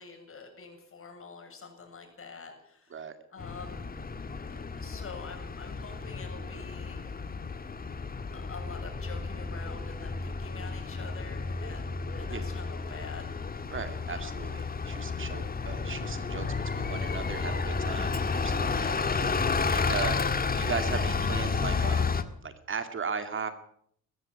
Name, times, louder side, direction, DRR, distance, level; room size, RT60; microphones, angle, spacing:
voice 1, 0.0-3.0 3.3-3.9 4.8-7.1 8.3-13.3 14.1-14.4 18.1-18.2 18.8-19.4 19.7-19.9, left 4 dB, 45° left, 4 dB, 7.6 m, -46 dB
Bus, 3.4-22.2, left 4 dB, 30° left, 1.8 m, -32 dB
voice 2, 13.7-18.1 18.4-18.9 19.7-20.2 20.5-23.5, right 5 dB, 40° right, 9 dB, 2.4 m, -37 dB
21.0 x 14.0 x 8.7 m, 0.67 s
cardioid pair, 90°, 30 cm